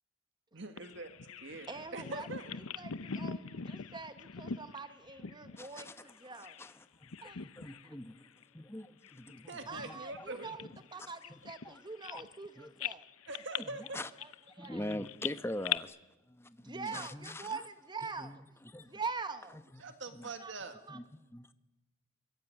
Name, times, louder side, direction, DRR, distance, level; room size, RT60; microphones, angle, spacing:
voice 1, 0.5-1.1 1.4-1.7 1.9-2.5 9.5-10.5 13.3-14.0 19.8-20.8, right 2 dB, 60° right, 1.9 m, -43 dB
Bird vocalization bird call bird song, 0.8-6.7 7.0-7.9 8.2-8.4 9.0-12.5 12.8-15.8, left 8 dB, 90° left, 0.8 m, -42 dB
voice 2, 1.7-2.3 2.7-6.6 7.2-7.7 9.7-13.0 14.2-14.9 16.6-18.4 18.9-19.6 20.4-20.5 20.9-21.0, right 4 dB, 20° right, 1.1 m, -44 dB
voice 3, 5.5-6.0 6.3-8.3 8.5-8.9 9.1-9.4 9.7-10.3 11.0-11.8 12.1-12.2 12.6-12.7 13.6-14.1 14.6-16.0 16.3-17.6 18.2-18.9 19.5-19.8 20.1-20.3 20.9-21.0 21.3-21.5, left 1 dB, 10° left, 1.0 m, -44 dB
25.0 x 21.5 x 9.1 m
head